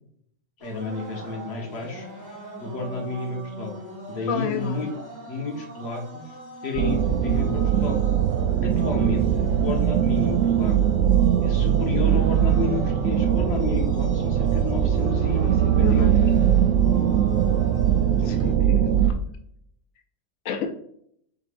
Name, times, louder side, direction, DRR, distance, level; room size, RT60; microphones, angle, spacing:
voice 1, 0.6-2.1 2.6-3.7 4.1-4.9 5.3-6.4 6.6-8.0 8.6-11.0 11.4-16.2, left 2 dB, 55° left, 1 dB, 1.2 m, -31 dB
sound 1, 0.6-18.5, right 1 dB, 15° right, 1.2 m, -40 dB
voice 2, 4.3-4.8 15.8-16.3 18.2-19.2 20.4-20.7, left 6 dB, 90° left, 4 dB, 1.0 m, -30 dB
sound 2, 6.7-19.1, right 9 dB, 75° right, 0.9 m, -21 dB
4.7 x 3.9 x 2.5 m, 0.68 s
omnidirectional pair, 1.3 m